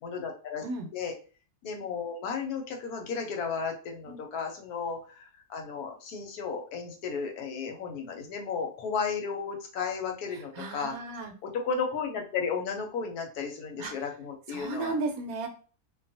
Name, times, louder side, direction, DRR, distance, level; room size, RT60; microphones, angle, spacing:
voice 1, 0.0-0.6 0.9-1.1 1.6-11.0 11.4-15.0, left 5 dB, 75° left, 3 dB, 1.1 m, -34 dB
voice 2, 10.6-11.3 13.8-13.9 14.5-15.5, right 3 dB, 70° right, 4 dB, 1.0 m, -34 dB
2.6 x 2.3 x 2.6 m, 0.38 s
omnidirectional pair, 1.7 m